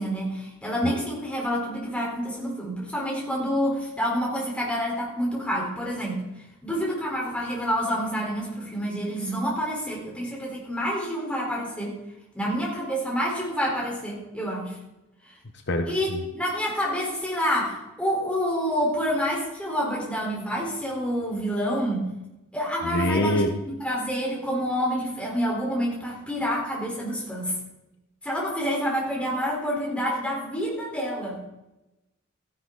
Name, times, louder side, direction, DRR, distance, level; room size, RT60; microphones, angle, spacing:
voice 1, 0.0-6.3 6.6-11.9 12.3-14.8 15.3-15.4 15.9-22.1 22.5-27.6 28.2-31.4, equal, 5° left, -4 dB, 4.1 m, -28 dB
voice 2, 15.7-16.2 22.8-23.5, left 1 dB, 55° left, 6 dB, 0.9 m, -25 dB
14.5 x 11.0 x 4.0 m, 0.95 s
head